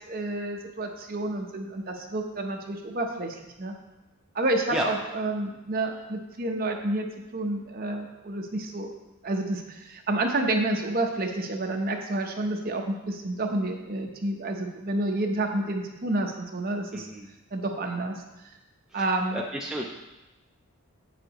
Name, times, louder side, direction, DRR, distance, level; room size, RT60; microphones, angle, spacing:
voice 1, 0.1-3.7 4.3-7.1 7.3-8.9 9.2-17.1 17.5-18.1 18.9-19.4, right 2 dB, 40° right, 3 dB, 0.8 m, -29 dB
voice 2, 16.9-17.3 18.9-19.9, right 1 dB, 5° right, -1 dB, 0.4 m, -32 dB
8.5 x 6.8 x 3.0 m, 1.0 s
head